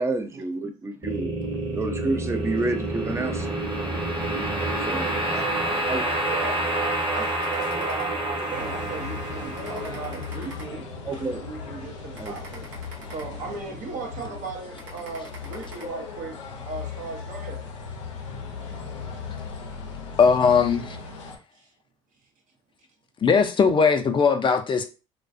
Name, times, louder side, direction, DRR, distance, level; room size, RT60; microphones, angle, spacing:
voice 1, 0.0-1.3 1.7-3.5 4.9-5.4 5.9-6.0 11.1-11.4 12.2-12.3, right 2 dB, 20° right, 0.5 m, -29 dB
sound 1, 1.0-12.2, right 1 dB, 35° right, 1.0 m, -28 dB
voice 2, 6.2-10.8 11.2-12.7 13.1-17.6 18.7-19.4 21.5-21.7, right 4 dB, 60° right, 0.7 m, -37 dB
sound 2, 7.4-8.6 9.0-9.2 9.6-11.2 11.6-11.8 12.1-13.8 14.2-14.4 14.8-15.8, right 3 dB, 85° right, 0.9 m, -45 dB
sound 3, 8.5-21.4, left 6 dB, 90° left, 0.5 m, -38 dB
voice 3, 20.2-21.0 23.2-24.8, left 5 dB, 35° left, 0.4 m, -19 dB
2.3 x 2.2 x 2.5 m
hypercardioid pair, 60°, 15 cm